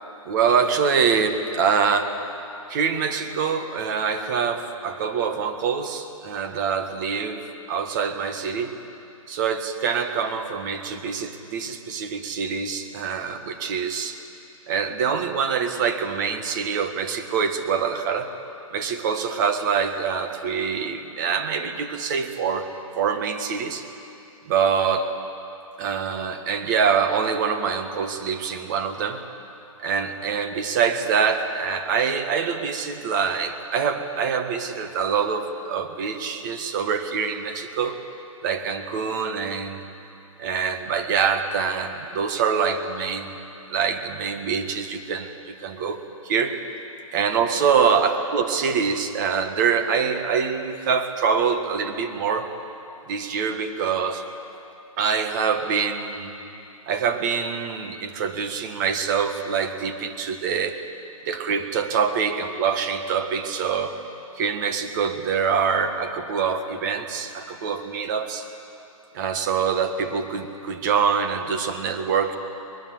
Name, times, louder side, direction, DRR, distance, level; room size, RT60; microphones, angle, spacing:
voice 1, 0.2-2.2 2.7-8.8 9.3-14.2 14.7-18.3 18.7-23.9 24.5-25.1 25.8-29.2 29.8-38.0 38.4-39.8 40.4-43.4 43.7-46.6 47.1-52.5 53.1-54.3 55.0-56.3 56.9-60.8 61.2-63.9 64.4-68.5 69.1-72.4, right 6 dB, 35° right, 8 dB, 1.6 m, -25 dB
23.5 x 20.5 x 7.9 m, 2.8 s
hypercardioid pair, 160°, 18 cm